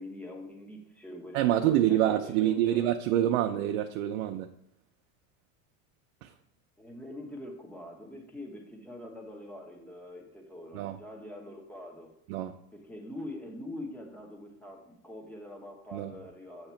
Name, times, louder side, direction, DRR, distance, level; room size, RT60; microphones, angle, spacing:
voice 1, 0.0-2.8 6.8-12.1 12.7-16.7, left 1 dB, 5° left, 1 dB, 0.9 m, -44 dB
voice 2, 1.3-4.5 6.2-6.3 10.7-11.0 12.3-12.5 15.9-16.1, right 12 dB, 75° right, 6 dB, 0.6 m, -26 dB
7.9 x 2.9 x 5.7 m, 0.76 s
supercardioid pair, 150°, 40 cm